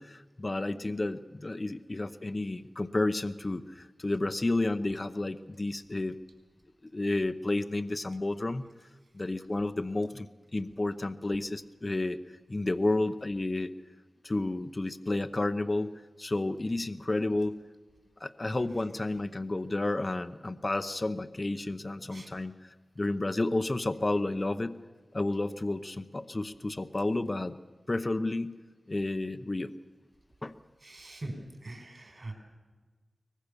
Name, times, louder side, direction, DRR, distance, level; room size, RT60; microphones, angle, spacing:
voice 1, 0.0-6.2 6.9-8.6 9.1-12.2 12.5-13.7 14.2-17.6 18.2-24.8 25.1-27.6 27.9-28.6 28.9-29.7 30.4-30.6, left 2 dB, 30° left, 10 dB, 0.8 m, -31 dB
voice 2, 30.8-31.4 31.6-32.3, right 2 dB, 45° right, 4 dB, 5.1 m, -42 dB
23.5 x 19.5 x 6.9 m, 1.3 s
wide cardioid pair, 80°, 0 cm